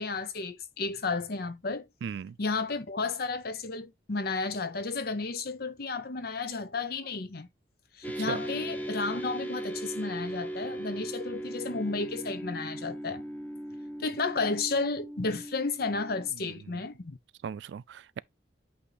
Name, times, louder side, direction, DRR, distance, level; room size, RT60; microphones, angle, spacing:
voice 1, 0.0-1.9 2.4-7.5 8.0-13.2 14.0-17.2, left 3 dB, 55° left, 0.8 m, -32 dB
voice 2, 2.0-2.4 8.2-8.4 16.3-16.8 17.4-18.2, right 7 dB, 70° right, 0.3 m, -38 dB
sound 1, 8.0-16.3, right 1 dB, 10° left, 0.8 m, -38 dB
8.5 x 2.9 x 3.9 m
head